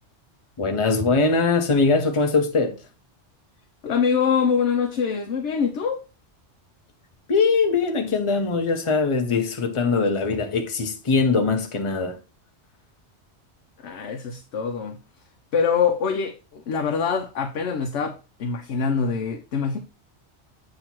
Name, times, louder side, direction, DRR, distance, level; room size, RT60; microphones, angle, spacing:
voice 1, 0.6-2.7 7.3-12.2, left 4 dB, 30° left, 0.9 m, -21 dB
voice 2, 3.8-6.0 13.8-15.0 15.5-19.8, left 6 dB, 75° left, 1.0 m, -24 dB
7.6 x 2.9 x 4.4 m
omnidirectional pair, 1.2 m